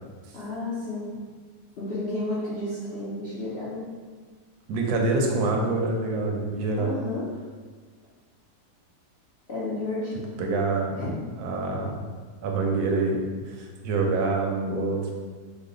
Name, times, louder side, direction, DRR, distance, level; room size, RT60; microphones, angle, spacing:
voice 1, 0.3-1.1 1.8-3.8 6.8-7.2 9.5-10.3 11.0-11.1, left 2 dB, 75° left, -10 dB, 0.5 m, -31 dB
voice 2, 4.7-6.9 10.4-11.0 11.4-12.0 12.4-13.2 13.5-15.1, right 3 dB, 70° right, 0 dB, 1.0 m, -26 dB
3.1 x 2.1 x 3.7 m, 1.5 s
omnidirectional pair, 1.9 m